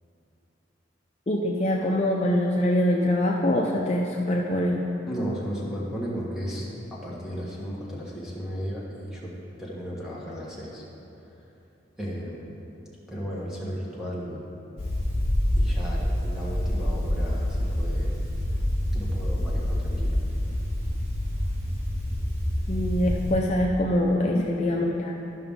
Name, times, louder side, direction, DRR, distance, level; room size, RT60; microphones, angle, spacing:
voice 1, 1.3-4.8 22.7-25.1, left 1 dB, 35° left, -1 dB, 0.5 m, -24 dB
voice 2, 5.1-9.3 9.6-10.8 12.0-12.6 13.1-14.4 15.5-18.1 18.9-20.1, equal, 5° right, -6 dB, 1.4 m, -34 dB
sound 1, 14.8-23.3, left 1 dB, 35° right, 1.4 m, -27 dB
12.5 x 5.8 x 3.6 m, 2.9 s
head